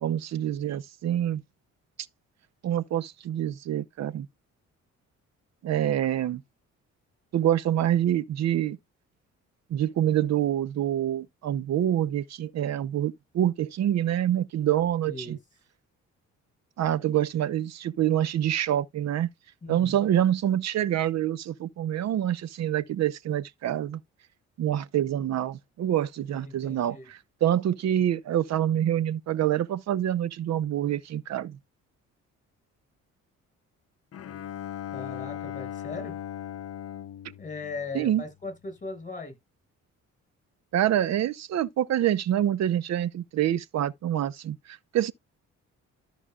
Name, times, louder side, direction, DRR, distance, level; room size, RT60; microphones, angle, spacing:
voice 1, 0.0-1.4 2.6-4.3 5.6-6.4 7.3-8.8 9.7-15.4 16.8-19.3 19.7-24.0 24.6-31.6 37.9-38.2 40.7-45.1, right 11 dB, 60° right, 0.7 m, -26 dB
voice 2, 15.1-15.4 19.6-20.2 26.3-27.1 34.9-36.2 37.4-39.4, left 3 dB, 25° left, 6.1 m, -38 dB
Bowed string instrument, 34.1-38.5, left 10 dB, 50° left, 0.8 m, -39 dB
13.5 x 5.0 x 2.4 m
cardioid pair, 90°, 30 cm